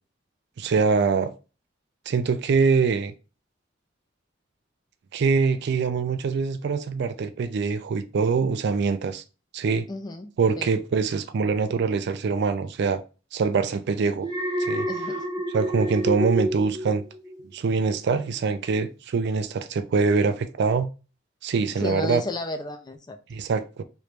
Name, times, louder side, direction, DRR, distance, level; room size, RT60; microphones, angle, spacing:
voice 1, 0.6-1.3 2.1-3.1 5.1-9.2 9.5-9.9 10.4-13.0 13.3-14.3 14.6-14.9 15.5-17.0 17.5-20.9 21.4-22.2 23.3-23.8, right 5 dB, 60° right, 0.4 m, -24 dB
voice 2, 9.9-10.7 14.9-15.2 21.8-23.2, left 2 dB, 20° left, 0.4 m, -33 dB
Alarm, 14.2-17.5 17.9-18.3, right 1 dB, 20° right, 0.6 m, -29 dB
3.1 x 2.6 x 3.2 m
head